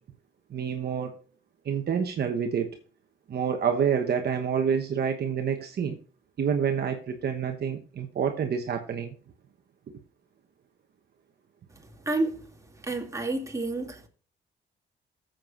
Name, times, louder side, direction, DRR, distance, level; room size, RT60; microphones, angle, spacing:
voice 1, 0.5-1.1 1.6-2.7 3.3-6.0 6.4-9.1, right 7 dB, 55° right, 1.1 m, -28 dB
voice 2, 12.1-12.4 12.8-14.1, right 2 dB, 15° right, 2.5 m, -29 dB
15.0 x 7.7 x 2.5 m
cardioid pair, 90°, 20 cm